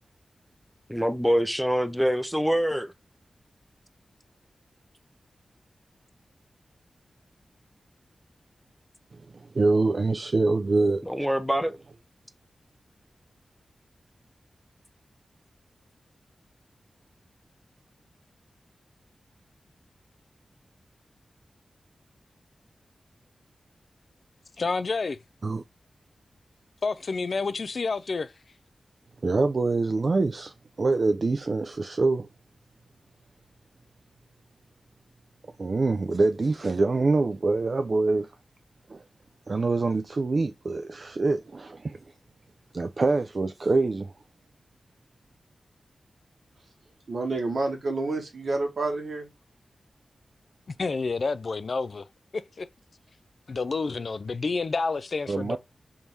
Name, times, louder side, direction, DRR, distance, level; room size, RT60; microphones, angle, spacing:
voice 1, 0.9-2.9 11.0-11.8, equal, ahead, 0.5 m, -25 dB
voice 2, 9.3-11.0 25.4-25.6 29.2-32.3 35.6-38.3 38.9-39.0 39.5-42.0 42.7-44.1 55.3-55.6, right 3 dB, 50° right, 0.3 m, -25 dB
voice 3, 24.6-25.2 26.8-28.3 50.8-52.0 52.3-52.7 53.5-55.6, left 4 dB, 60° left, 0.3 m, -29 dB
voice 4, 47.1-49.3, right 3 dB, 70° right, 1.3 m, -29 dB
3.6 x 2.6 x 4.5 m
wide cardioid pair, 80°, 0 cm